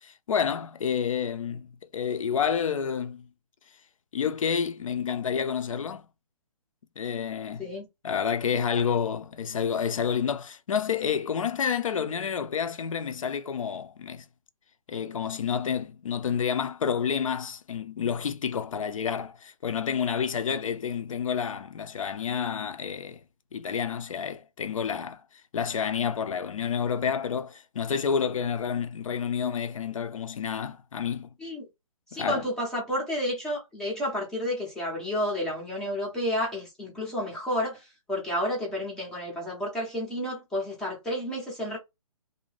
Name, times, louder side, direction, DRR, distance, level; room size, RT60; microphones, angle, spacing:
voice 1, 0.0-1.7 1.9-3.3 4.1-6.0 7.0-7.7 8.0-14.2 14.9-23.2 23.5-25.2 25.5-31.3 32.1-32.4, left 7 dB, 60° left, 0.5 m, -29 dB
voice 2, 32.1-41.8, equal, 5° left, 0.5 m, -31 dB
2.7 x 2.1 x 3.1 m
hypercardioid pair, 160°, 19 cm